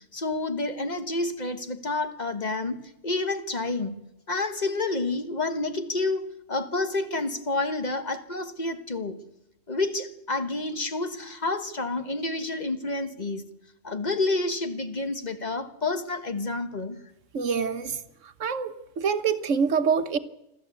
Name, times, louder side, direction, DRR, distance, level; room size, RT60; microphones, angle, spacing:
voice 1, 0.0-4.0 4.3-9.2 9.7-13.4 13.8-17.0, left 2 dB, 35° left, 1.4 m, -29 dB
voice 2, 17.3-18.0 18.2-20.2, right 6 dB, 70° right, 1.4 m, -26 dB
26.5 x 13.0 x 8.3 m
omnidirectional pair, 1.4 m